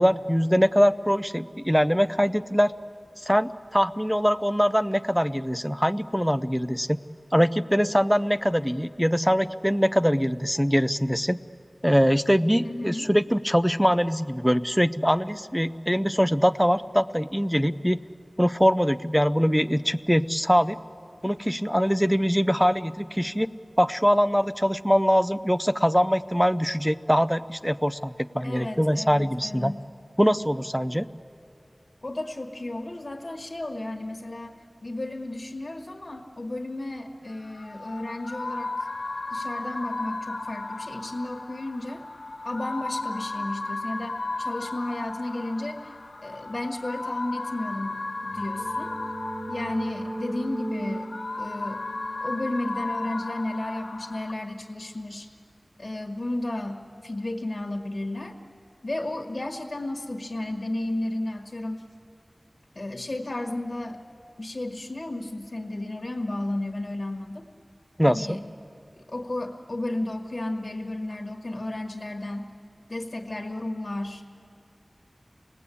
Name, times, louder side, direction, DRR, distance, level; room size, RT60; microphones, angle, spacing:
voice 1, 0.0-2.7 3.2-6.9 7.3-11.4 11.8-18.0 18.4-20.8 21.2-23.5 23.8-29.7 30.2-31.1 68.0-68.4, equal, ahead, 12 dB, 0.5 m, -23 dB
voice 2, 12.6-13.1 28.4-29.8 32.0-34.6 34.8-38.9 39.3-42.0 42.4-49.0 49.5-51.1 51.4-51.8 52.2-55.3 55.8-58.4 58.8-61.8 62.7-64.0 64.4-67.4 68.0-68.4 69.1-72.5 72.9-74.2, left 1 dB, 55° left, 2 dB, 1.5 m, -33 dB
sound 1, 37.3-54.3, left 2 dB, 85° left, 1.2 m, -35 dB
sound 2, 48.0-53.5, right 1 dB, 55° right, 1.3 m, -38 dB
28.0 x 19.0 x 8.5 m, 2.5 s
wide cardioid pair, 45°, 0 cm